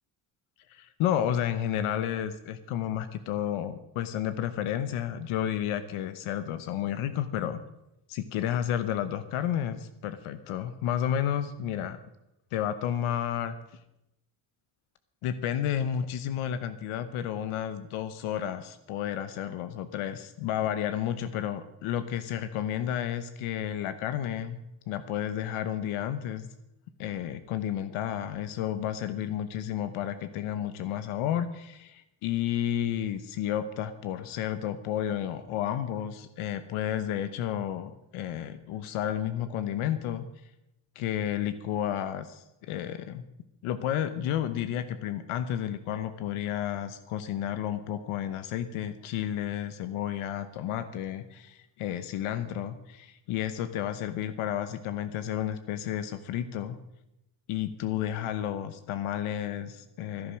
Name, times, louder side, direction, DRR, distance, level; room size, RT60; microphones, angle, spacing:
voice 1, 0.7-7.6 8.1-12.0 12.5-13.6 15.2-24.6 24.9-26.5 27.0-40.2 40.9-43.2 43.6-56.8 57.5-60.4, left 10 dB, 85° left, 11 dB, 1.0 m, -31 dB
16.0 x 10.5 x 6.3 m, 0.88 s
cardioid pair, 120°, 48 cm